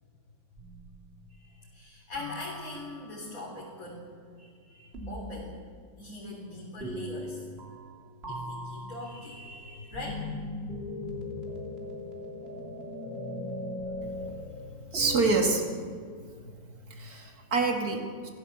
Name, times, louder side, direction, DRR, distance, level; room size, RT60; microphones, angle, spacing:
sound 1, 0.6-1.4 2.1-3.2 4.9-5.5 6.8-8.0 8.2-15.6, left 2 dB, 30° right, 3.4 m, -39 dB
voice 1, 1.4-4.0 4.4-5.5 6.0-7.5 8.3-10.3 16.4-17.5, left 2 dB, 45° left, -4 dB, 3.9 m, -42 dB
voice 2, 14.7-15.6 16.9-18.3, right 4 dB, 50° right, 2 dB, 2.9 m, -27 dB
26.0 x 16.0 x 7.3 m, 2.1 s
omnidirectional pair, 2.1 m